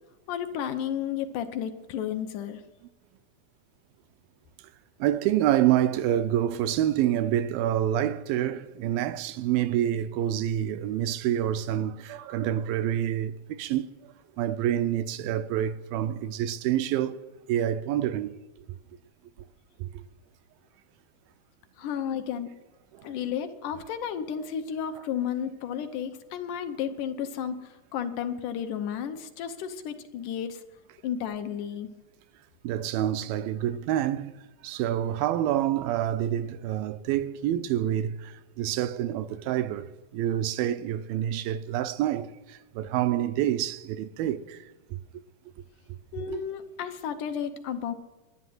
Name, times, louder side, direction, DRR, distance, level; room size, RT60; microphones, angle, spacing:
voice 1, 0.3-2.6 21.8-22.5 23.0-30.6 31.0-31.9 46.1-47.9, left 8 dB, 75° left, 2.0 m, -32 dB
voice 2, 5.0-13.9 14.4-17.2 17.5-18.4 19.8-20.0 22.9-23.1 32.6-34.3 34.6-39.9 40.1-44.6 46.2-46.4, right 11 dB, 80° right, 2.3 m, -27 dB
11.5 x 11.0 x 7.8 m
omnidirectional pair, 4.4 m